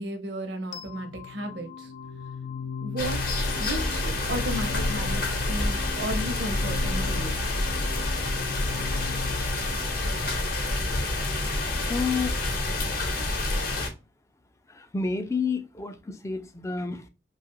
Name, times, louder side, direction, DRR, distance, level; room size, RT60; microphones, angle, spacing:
voice 1, 0.0-1.9 2.8-3.2 3.6-7.4, equal, 70° right, 0.8 m, -34 dB
sound 1, 0.7-11.7, left 6 dB, 85° left, 0.4 m, -39 dB
sound 2, 3.0-13.9, left 2 dB, 55° left, 0.7 m, -28 dB
voice 2, 11.9-12.5 14.7-17.1, left 4 dB, 15° left, 0.3 m, -30 dB
2.8 x 2.3 x 2.9 m
head